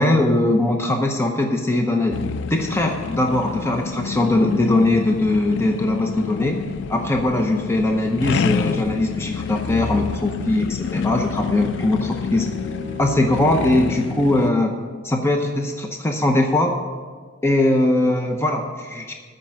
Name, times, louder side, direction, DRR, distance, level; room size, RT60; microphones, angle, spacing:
voice 1, 0.0-6.6 6.9-12.5 13.0-14.7 15.0-16.8 17.4-19.1, left 1 dB, 15° left, 3 dB, 0.7 m, -20 dB
sound 1, 2.1-14.5, left 6 dB, 60° left, 0.3 m, -28 dB
Bowed string instrument, 10.5-14.4, left 5 dB, 25° right, 3.8 m, -36 dB
13.5 x 5.2 x 8.5 m, 1.5 s
head